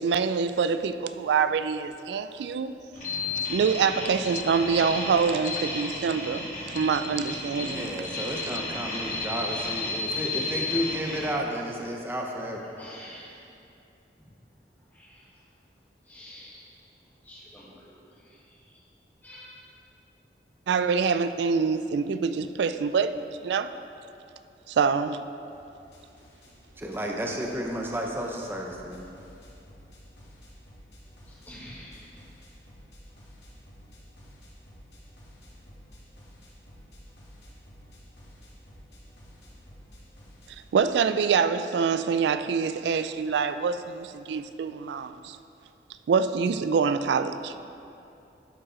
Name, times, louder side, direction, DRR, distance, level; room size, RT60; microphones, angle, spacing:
voice 1, 0.0-2.7 3.5-7.9 20.7-23.7 24.7-25.2 40.7-45.4 46.1-47.5, right 5 dB, 75° right, 12 dB, 0.3 m, -25 dB
sound 1, 2.9-11.4, left 3 dB, 45° left, 1.5 m, -33 dB
voice 2, 7.6-12.6 26.8-29.0, equal, 15° right, 0 dB, 0.5 m, -32 dB
voice 3, 12.8-13.3 14.9-15.2 16.1-16.7 17.2-18.0 19.2-19.6 31.3-32.1, equal, 10° left, -7 dB, 1.6 m, -47 dB
sound 2, 25.5-40.7, equal, 80° left, 1.9 m, -52 dB
11.0 x 4.6 x 4.3 m, 2.7 s
head